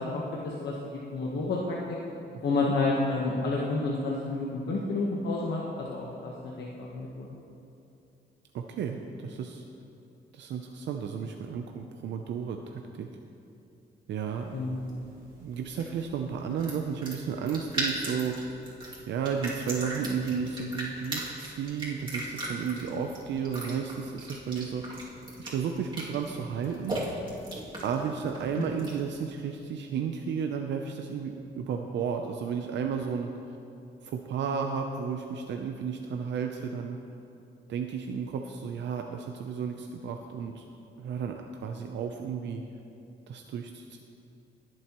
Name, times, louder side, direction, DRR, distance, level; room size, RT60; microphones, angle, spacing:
voice 1, 0.0-2.0 2.4-7.3 14.5-14.8, left 3 dB, 65° left, -4 dB, 1.2 m, -30 dB
voice 2, 8.5-9.6 10.3-13.1 14.1-14.6 15.4-18.4 19.1-25.0 25.4-27.0 27.8-33.3 34.0-37.0 37.7-40.6 41.0-42.6 43.3-44.0, right 6 dB, 75° right, 4 dB, 0.6 m, -33 dB
sound 1, 14.3-29.1, right 1 dB, 25° right, 2.5 m, -39 dB
20.0 x 7.6 x 3.0 m, 2.7 s
cardioid pair, 120°, 19 cm